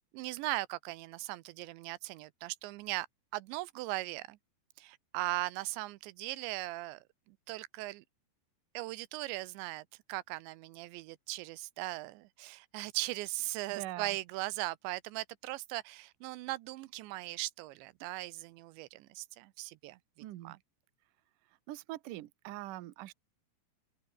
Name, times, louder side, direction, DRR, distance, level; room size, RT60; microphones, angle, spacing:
voice 1, 0.1-3.1 3.3-4.4 4.8-8.0 8.7-20.0 20.4-20.6, right 19 dB, 90° right, 3.0 m, -39 dB
voice 2, 13.7-14.2 20.2-20.6 21.7-23.1, right 16 dB, 70° right, 2.1 m, -43 dB
open air
omnidirectional pair, 5.1 m